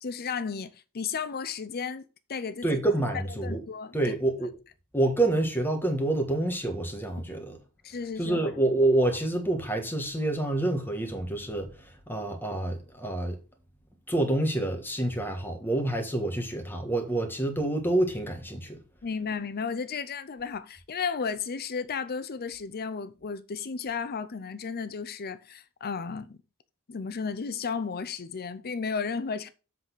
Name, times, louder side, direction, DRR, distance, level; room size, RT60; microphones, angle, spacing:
voice 1, 0.0-2.8 3.4-4.1 7.8-8.5 19.0-26.4 26.9-29.5, left 5 dB, 45° left, 0.6 m, -34 dB
voice 2, 2.6-3.6 3.9-4.5 4.9-7.6 8.2-13.4 14.1-18.8, right 2 dB, 10° left, 1.5 m, -27 dB
7.7 x 4.0 x 6.1 m
head